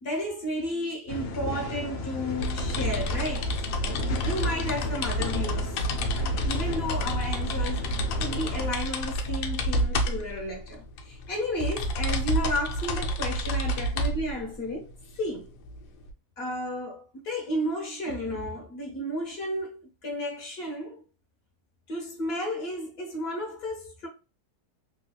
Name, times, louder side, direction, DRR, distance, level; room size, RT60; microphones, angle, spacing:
voice 1, 0.0-5.8 6.2-15.5 16.4-21.0 21.9-24.1, equal, 45° left, 1.2 m, -33 dB
sound 1, 1.1-8.7, left 3 dB, 70° left, 0.6 m, -35 dB
sound 2, 2.4-16.1, equal, 85° left, 1.2 m, -29 dB
3.4 x 2.7 x 2.3 m
omnidirectional pair, 1.7 m